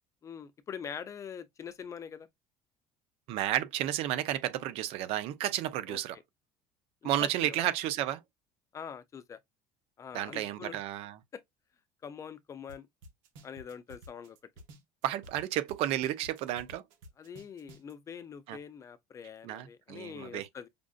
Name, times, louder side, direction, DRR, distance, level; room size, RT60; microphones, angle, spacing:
voice 1, 0.2-2.3 5.9-6.0 7.0-7.7 8.7-9.4 10.0-10.8 11.3-11.4 12.0-12.9 13.4-14.4 17.2-20.7, left 7 dB, 30° left, 0.6 m, -44 dB
voice 2, 3.3-6.2 7.0-8.2 10.1-11.2 15.0-16.8 18.5-18.6 19.4-20.5, right 12 dB, 65° right, 0.7 m, -32 dB
sound 1, 12.7-12.8 13.0-15.4 15.7-17.9, equal, 90° right, 1.4 m, -51 dB
5.1 x 2.5 x 2.4 m
cardioid pair, 130°, 11 cm